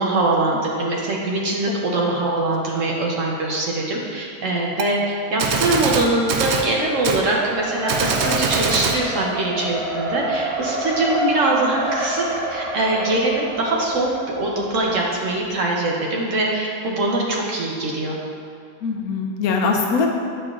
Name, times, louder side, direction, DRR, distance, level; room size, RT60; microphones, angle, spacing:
voice 1, 0.0-12.2 12.5-18.1, right 2 dB, 60° right, -2 dB, 1.0 m, -22 dB
Gunshot gunfire, 4.8-4.9 5.4-6.7 7.0-7.2 7.9-9.0, right 5 dB, 85° right, 0.6 m, -22 dB
Race car auto racing, 6.5-15.4, right 2 dB, 25° right, 0.7 m, -29 dB
voice 2, 18.8-20.1, left 4 dB, 70° left, 1 dB, 1.0 m, -23 dB
8.2 x 5.2 x 2.4 m, 2.4 s
omnidirectional pair, 1.7 m